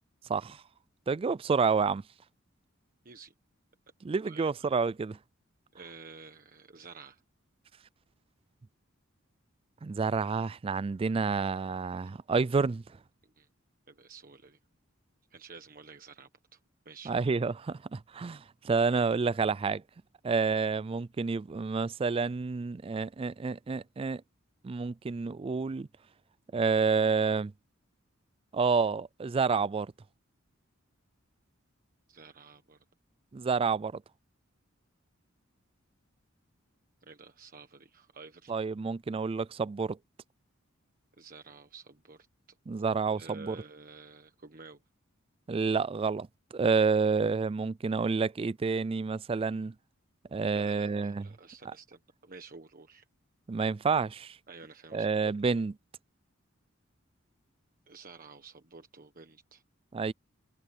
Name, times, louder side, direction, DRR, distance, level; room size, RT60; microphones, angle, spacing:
voice 1, 0.3-0.6 1.1-2.0 4.0-5.2 9.8-12.8 17.1-19.8 20.2-24.2 24.6-25.9 26.5-27.5 28.5-29.9 33.3-34.0 38.5-40.0 42.7-43.6 45.5-46.3 46.5-49.7 50.3-51.3 53.5-54.4 54.9-55.7 59.9-60.1, right 4 dB, 25° right, 0.3 m, -29 dB
voice 2, 5.7-7.2 13.2-13.5 13.9-14.6 15.3-16.6 16.8-17.2 32.1-32.8 37.0-38.5 41.2-42.9 43.2-44.8 50.5-53.1 54.5-55.3 57.9-59.6, right 4 dB, 45° right, 1.4 m, -51 dB
head